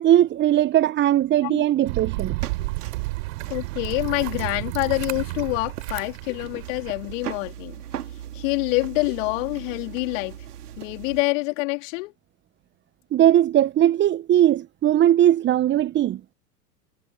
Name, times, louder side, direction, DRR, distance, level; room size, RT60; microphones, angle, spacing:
voice 1, 0.0-2.4 13.1-16.2, right 12 dB, 25° right, 1.1 m, -19 dB
sound 1, 1.8-7.1, right 22 dB, 50° right, 4.2 m, -31 dB
sound 2, 2.4-11.2, right 10 dB, 70° right, 4.7 m, -40 dB
voice 2, 3.5-7.8 8.3-10.4 10.8-12.1, left 26 dB, 50° left, 3.6 m, -26 dB
figure-of-eight pair, 95°, 49 cm